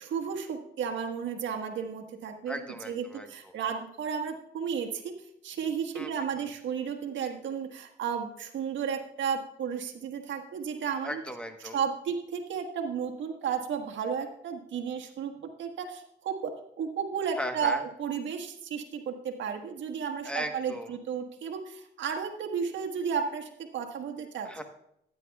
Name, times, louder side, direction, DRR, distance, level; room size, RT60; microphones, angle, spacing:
voice 1, 0.0-2.6 2.9-5.1 5.4-11.2 11.7-16.5 16.8-24.5, right 7 dB, 70° right, 3 dB, 1.4 m, -33 dB
voice 2, 2.5-3.5 5.9-6.1 11.0-11.8 17.4-17.8 20.2-21.0 24.4-24.6, equal, 5° left, 6 dB, 1.1 m, -37 dB
15.0 x 9.9 x 2.3 m, 0.75 s
cardioid pair, 90°, 20 cm